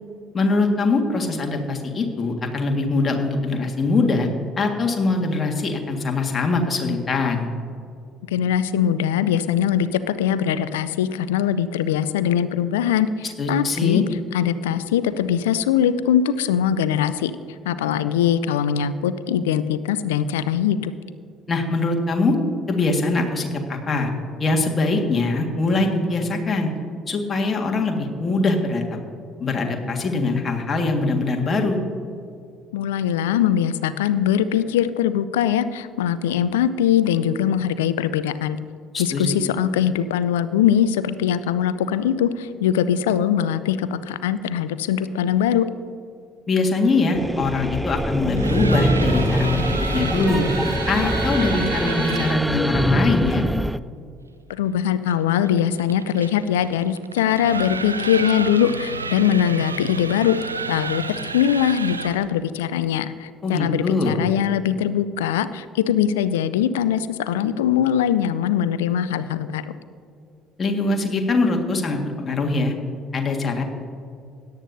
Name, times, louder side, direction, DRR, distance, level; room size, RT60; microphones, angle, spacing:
voice 1, 0.3-4.3 4.6-7.5 13.4-14.0 21.5-22.4 22.7-24.1 24.4-26.7 27.1-29.0 29.4-31.8 38.9-39.3 46.5-50.5 50.9-53.5 63.4-64.2 70.6-72.7 73.1-73.6, left 3 dB, 35° left, 2 dB, 1.7 m, -22 dB
voice 2, 8.3-14.0 14.3-17.3 17.7-20.9 32.7-38.6 39.0-45.7 54.5-60.4 60.6-69.7, left 9 dB, 75° left, 15 dB, 0.4 m, -21 dB
sound 1, 47.1-53.8, equal, 5° right, 0.3 m, -23 dB
sound 2, 48.2-52.5 55.1-62.3, right 4 dB, 90° right, 0.4 m, -31 dB
17.0 x 10.5 x 2.7 m, 2.4 s
figure-of-eight pair, 50°, 0 cm